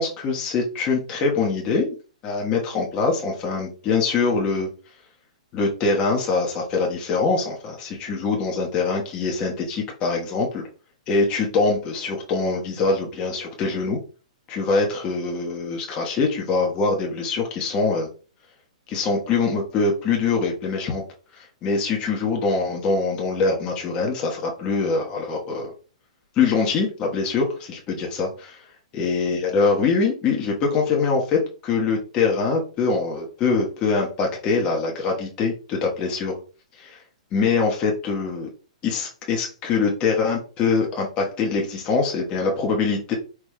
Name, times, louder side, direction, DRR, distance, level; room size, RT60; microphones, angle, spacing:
voice 1, 0.0-1.9 2.2-4.7 5.5-10.6 11.1-14.0 14.5-18.1 18.9-21.0 21.3-25.7 26.4-28.6 28.9-36.4 36.8-37.0 37.3-38.5 38.8-43.1, left 4 dB, 25° left, -1 dB, 1.1 m, -23 dB
4.6 x 3.3 x 2.2 m, 0.35 s
hypercardioid pair, 140°, 4 cm